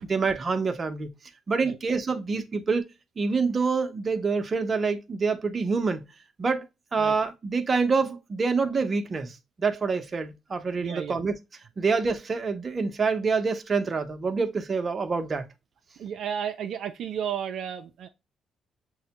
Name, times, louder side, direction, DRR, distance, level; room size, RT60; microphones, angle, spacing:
voice 1, 0.1-1.1 1.5-2.9 3.2-6.0 6.4-6.6 6.9-11.3 11.8-15.4, right 4 dB, 40° right, 0.7 m, -26 dB
voice 2, 10.8-11.2 16.0-18.1, right 8 dB, 70° right, 0.4 m, -33 dB
6.2 x 2.2 x 2.8 m
cardioid pair, 90°, 0 cm